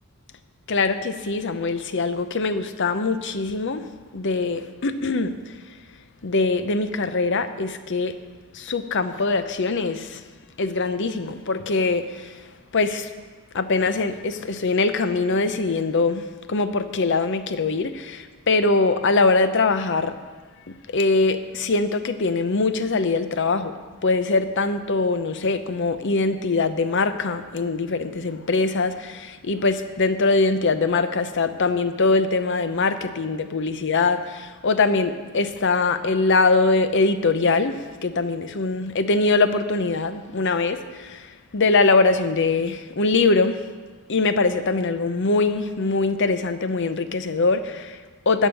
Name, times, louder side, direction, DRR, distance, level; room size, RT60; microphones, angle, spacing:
voice 1, 0.7-3.8 4.1-5.4 6.2-8.2 8.5-10.2 10.6-12.4 12.7-13.1 13.5-20.1 20.9-23.8 24.0-43.6 44.1-48.5, left 3 dB, 55° left, 10 dB, 0.7 m, -22 dB
13.5 x 5.5 x 8.9 m, 1.4 s
head